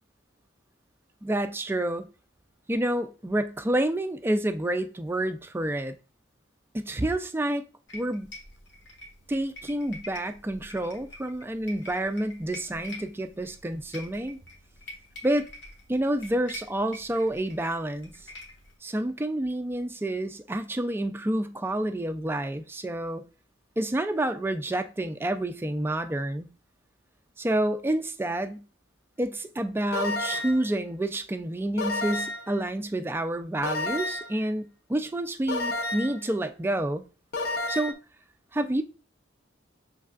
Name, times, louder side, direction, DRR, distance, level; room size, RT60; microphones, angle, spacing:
voice 1, 1.2-2.1 2.7-5.9 6.7-7.6 7.9-8.3 9.3-14.4 15.2-15.5 15.9-18.1 18.8-23.2 23.8-26.5 27.4-28.6 29.2-37.0 37.7-38.0 38.6-38.8, right 1 dB, 10° right, 0.3 m, -29 dB
sound 1, 7.9-18.7, left 1 dB, 70° left, 1.2 m, -46 dB
sound 2, 29.9-30.7 31.8-32.5 33.6-34.4 35.5-36.2 37.3-37.9, left 2 dB, 55° left, 0.6 m, -30 dB
6.4 x 3.2 x 2.4 m
head